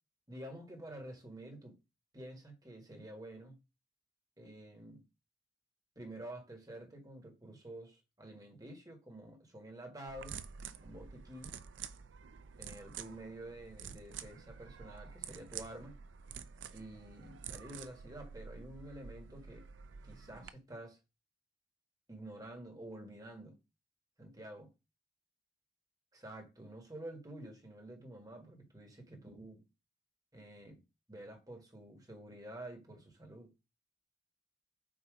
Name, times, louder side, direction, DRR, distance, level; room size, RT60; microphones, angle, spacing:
voice 1, 0.3-1.8 2.1-3.6 4.4-5.0 5.9-10.4 10.8-11.5 12.6-15.9 16.7-19.6 20.0-21.0 22.1-23.6 24.2-24.7 26.1-29.6 30.3-30.8 31.1-33.5, right 1 dB, 20° right, 1.6 m, -49 dB
sound 1, 10.1-20.5, right 7 dB, 90° right, 0.5 m, -49 dB
7.5 x 3.0 x 5.0 m
head